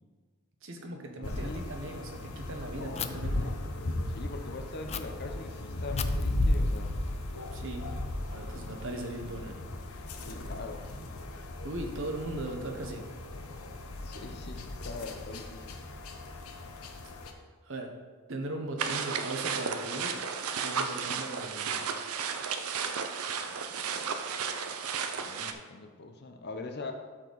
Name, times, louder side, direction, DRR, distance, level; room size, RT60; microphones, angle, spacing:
voice 1, 0.6-3.6 7.5-7.9 8.3-9.6 11.6-13.1 17.6-18.0 18.3-20.2 20.6-21.9, right 1 dB, 60° right, 3 dB, 1.2 m, -38 dB
sound 1, 1.2-17.3, left 1 dB, 75° left, 0.9 m, -36 dB
voice 2, 1.2-1.6 2.8-3.7 4.1-6.9 10.2-10.9 14.0-15.8 23.5-24.1 25.2-26.9, left 3 dB, 45° left, 5 dB, 0.8 m, -43 dB
Fire, 3.0-3.1 4.9-5.0 6.0-7.9, left 10 dB, 30° left, 0.3 m, -41 dB
sound 2, 18.8-25.5, right 6 dB, 80° right, 0.6 m, -33 dB
13.0 x 4.6 x 4.1 m, 1.5 s
head